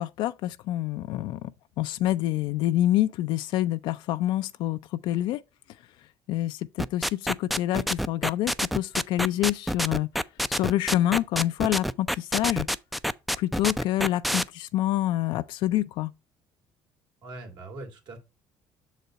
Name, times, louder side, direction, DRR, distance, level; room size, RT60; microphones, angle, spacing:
voice 1, 0.0-1.5 1.8-5.4 6.3-10.1 10.5-12.7 13.4-16.1, left 14 dB, 75° left, 0.4 m, -27 dB
sound 1, 6.8-14.4, equal, ahead, 0.3 m, -27 dB
voice 2, 17.2-18.2, right 2 dB, 65° right, 2.5 m, -41 dB
6.6 x 4.1 x 4.5 m
supercardioid pair, 85°, 8 cm